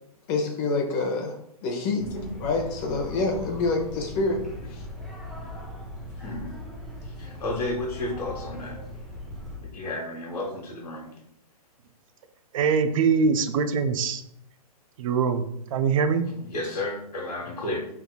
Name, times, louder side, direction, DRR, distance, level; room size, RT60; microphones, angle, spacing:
voice 1, 0.3-1.4 1.6-2.0 2.4-4.4 4.7-4.9, left 3 dB, 35° left, 2 dB, 0.8 m, -26 dB
sound 1, 2.0-9.6, left 1 dB, ahead, 0.7 m, -39 dB
voice 2, 6.2-6.5 7.0-8.8 9.6-11.1 16.4-17.9, left 2 dB, 90° left, -3 dB, 1.1 m, -32 dB
voice 3, 12.5-14.2 15.0-16.2, right 5 dB, 60° right, 9 dB, 0.5 m, -23 dB
4.5 x 3.5 x 2.3 m, 0.76 s
hypercardioid pair, 140°, 20 cm